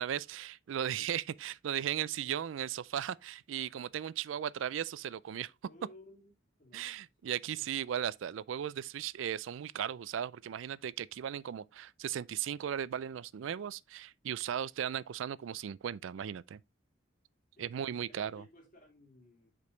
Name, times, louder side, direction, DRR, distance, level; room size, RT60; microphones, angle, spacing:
voice 1, 0.0-5.5 6.7-16.6 17.6-18.4, right 9 dB, 85° right, 0.3 m, -37 dB
voice 2, 5.6-6.3 6.6-6.9 17.6-19.5, left 1 dB, 45° left, 2.5 m, -57 dB
6.7 x 5.2 x 3.1 m
head